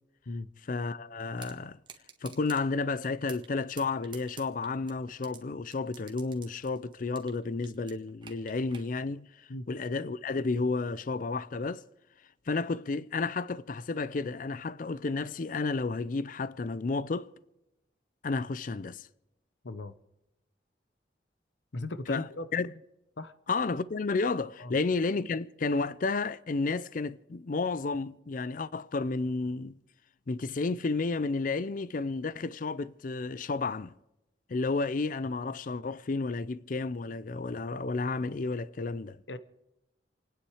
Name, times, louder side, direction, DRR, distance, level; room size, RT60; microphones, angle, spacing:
voice 1, 0.7-1.8 2.2-11.8 12.5-17.3 18.2-19.1 22.1-22.2 22.5-22.7 23.5-29.8 30.3-33.9 34.5-39.2, left 3 dB, 50° left, 0.5 m, -32 dB
sound 1, 1.4-1.5 1.9-2.6 3.0-3.5 3.8-5.4 5.7-7.4 7.6-8.9, right 6 dB, 25° right, 1.7 m, -48 dB
voice 2, 19.6-19.9 21.7-22.5 23.2-23.3 24.6-24.7 39.3-39.4, left 2 dB, 85° left, 0.9 m, -37 dB
28.5 x 9.9 x 4.8 m
head